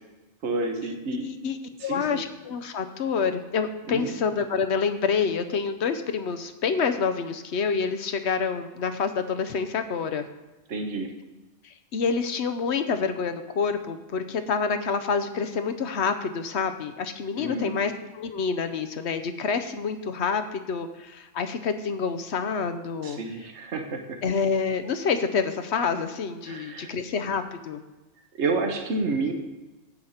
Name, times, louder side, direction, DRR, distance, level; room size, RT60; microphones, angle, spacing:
voice 1, 0.4-1.2 1.8-2.2 3.9-4.1 10.7-11.1 17.4-17.7 23.0-24.2 26.5-26.9 28.3-29.3, right 3 dB, 70° right, 4 dB, 1.4 m, -29 dB
voice 2, 1.2-10.2 11.6-23.2 24.2-27.8, left 5 dB, 70° left, 9 dB, 1.0 m, -27 dB
8.7 x 7.9 x 5.7 m, 1.1 s
omnidirectional pair, 1.2 m